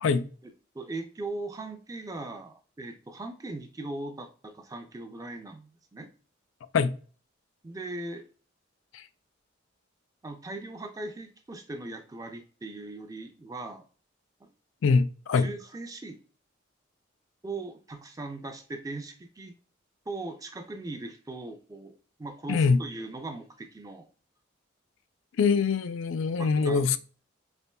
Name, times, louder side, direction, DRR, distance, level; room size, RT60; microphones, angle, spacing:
voice 1, 0.4-6.1 7.6-8.3 10.2-13.8 15.3-16.2 17.4-19.6 20.1-24.1 26.4-27.0, right 2 dB, 20° right, 0.4 m, -39 dB
voice 2, 14.8-15.5 22.5-22.8 25.4-27.0, left 5 dB, 80° left, 0.4 m, -23 dB
4.3 x 2.8 x 2.2 m
head